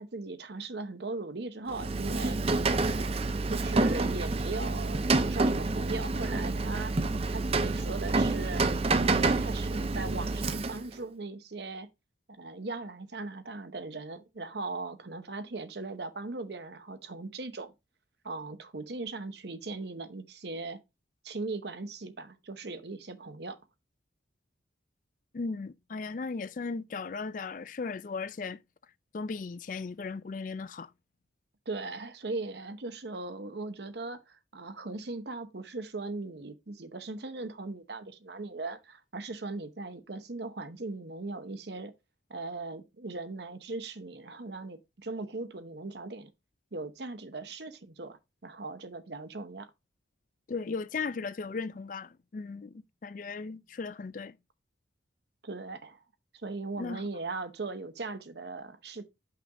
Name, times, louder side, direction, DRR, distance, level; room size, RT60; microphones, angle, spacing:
voice 1, 0.0-2.4 2.8-3.2 3.5-6.9 7.3-8.6 8.9-11.9 12.3-17.7 18.2-20.8 21.2-23.6 31.7-41.9 42.3-46.3 46.7-49.7 55.4-56.0 56.3-59.0, right 3 dB, 65° right, 0.9 m, -39 dB
Rain, 1.7-11.0, right 3 dB, 30° right, 0.5 m, -28 dB
voice 2, 25.3-28.6 29.1-30.9 50.5-54.4 56.8-57.0, left 4 dB, 45° left, 0.4 m, -36 dB
5.8 x 3.9 x 4.8 m
head